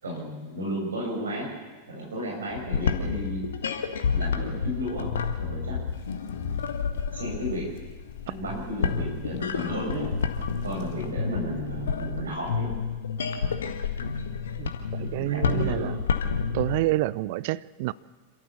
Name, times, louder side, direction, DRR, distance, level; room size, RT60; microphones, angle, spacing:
voice 1, 0.0-1.5 1.9-3.4 4.1-5.1 5.4-5.8 7.1-7.7 8.3-10.1 10.6-12.7 14.9-15.9, equal, 70° right, 7.1 m, -33 dB
sound 1, 2.5-16.9, left 6 dB, 65° left, 1.7 m, -30 dB
sound 2, 5.9-11.1, left 8 dB, 50° left, 2.0 m, -43 dB
voice 2, 15.0-15.9 16.5-17.9, right 18 dB, 50° right, 0.6 m, -28 dB
27.5 x 13.5 x 7.1 m
figure-of-eight pair, 90°, 0 cm